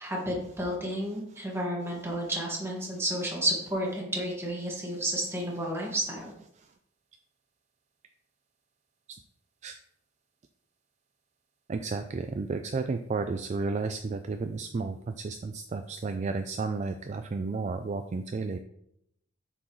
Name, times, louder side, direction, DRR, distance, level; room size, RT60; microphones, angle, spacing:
voice 1, 0.0-6.3, right 1 dB, 15° right, -2 dB, 1.8 m, -31 dB
voice 2, 11.7-15.0 15.2-18.6, right 4 dB, 35° right, 7 dB, 0.3 m, -32 dB
7.7 x 6.0 x 3.1 m, 0.76 s
head